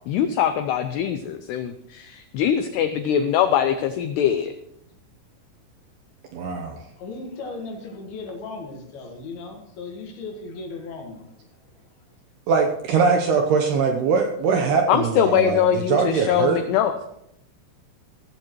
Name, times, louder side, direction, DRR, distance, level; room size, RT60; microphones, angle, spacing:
voice 1, 0.1-4.5 14.9-17.1, left 9 dB, 85° left, 8 dB, 2.3 m, -22 dB
voice 2, 6.3-6.8 12.5-16.6, right 5 dB, 75° right, 2 dB, 2.5 m, -21 dB
voice 3, 7.0-11.8, left 3 dB, 60° left, 2 dB, 3.2 m, -37 dB
16.0 x 14.5 x 3.1 m, 0.77 s
omnidirectional pair, 5.6 m